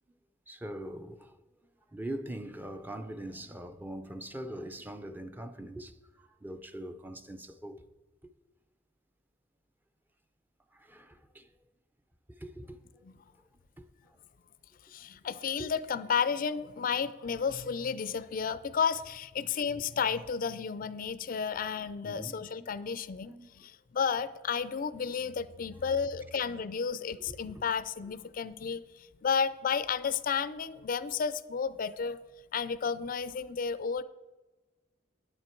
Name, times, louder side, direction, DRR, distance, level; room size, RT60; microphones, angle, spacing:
voice 1, 0.5-1.4 1.9-7.8 10.7-11.5 12.3-13.0 13.8-14.2 15.6-15.7 22.0-23.0 23.3-23.7 25.8-25.9 27.3-27.6 33.4-33.5 34.0-34.1, right 1 dB, 10° right, 0.5 m, -43 dB
voice 2, 14.9-32.2 32.5-34.0, left 6 dB, 50° left, 0.4 m, -32 dB
10.5 x 8.8 x 4.5 m
head